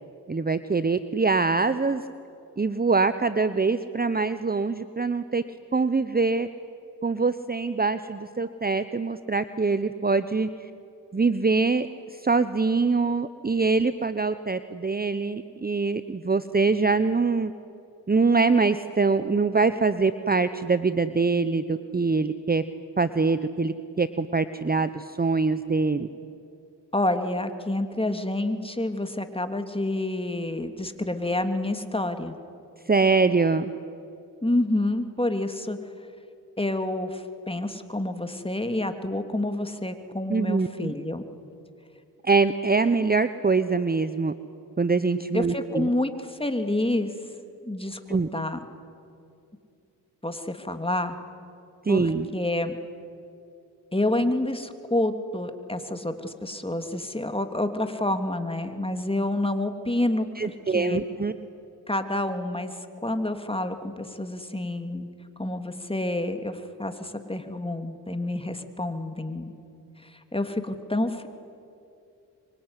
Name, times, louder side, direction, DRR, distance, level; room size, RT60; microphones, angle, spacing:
voice 1, 0.3-2.0 2.6-5.4 5.7-6.5 7.0-10.5 11.1-11.9 12.1-17.5 18.1-22.6 23.0-26.1 32.9-33.7 40.3-40.9 42.2-44.3 44.8-45.9 48.1-48.3 51.8-52.3 60.4-61.3, right 4 dB, 20° right, 12 dB, 1.0 m, -24 dB
voice 2, 26.9-32.4 34.4-35.8 36.6-41.2 45.3-47.1 47.6-48.6 50.2-51.2 51.9-52.8 53.9-60.5 60.7-61.0 61.9-65.1 65.4-69.5 70.0-71.3, left 1 dB, 15° left, 7 dB, 3.0 m, -28 dB
24.5 x 24.0 x 9.9 m, 2.6 s
supercardioid pair, 45°, 43 cm